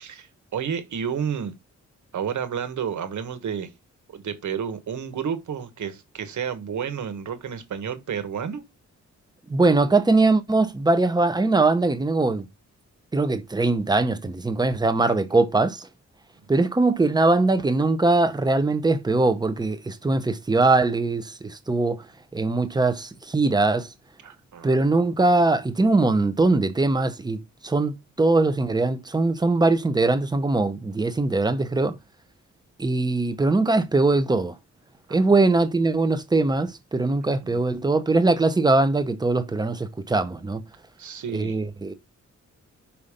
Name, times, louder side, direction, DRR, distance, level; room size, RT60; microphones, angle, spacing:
voice 1, 0.0-1.5 2.1-3.7 4.1-8.6 24.2-24.7 35.1-35.2 37.4-37.6 41.0-41.6, right 7 dB, 80° right, 1.5 m, -31 dB
voice 2, 9.5-12.5 13.1-15.9 16.5-22.0 22.3-23.9 24.6-32.0 32.8-34.5 35.1-40.6 41.3-41.9, right 3 dB, 15° right, 0.8 m, -21 dB
5.7 x 5.5 x 5.0 m
wide cardioid pair, 155°, 29 cm